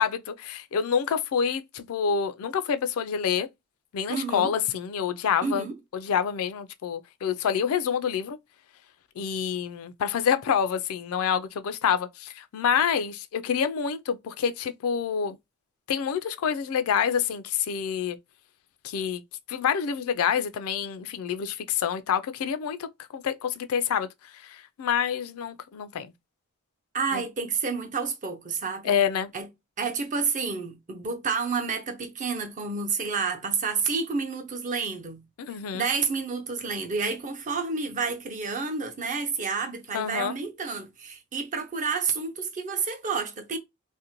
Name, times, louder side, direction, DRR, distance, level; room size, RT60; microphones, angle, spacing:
voice 1, 0.0-3.5 3.9-5.6 5.9-8.4 9.2-15.4 15.9-18.2 18.8-19.2 19.5-24.1 24.3-26.1 27.1-27.2 28.8-29.3 35.4-35.9 39.9-40.3, left 7 dB, 70° left, 0.3 m, -27 dB
voice 2, 4.1-4.5 5.4-5.7 26.9-29.0 29.3-29.5 29.8-35.2 35.7-43.6, right 5 dB, 35° right, 0.6 m, -29 dB
2.5 x 2.1 x 2.9 m
head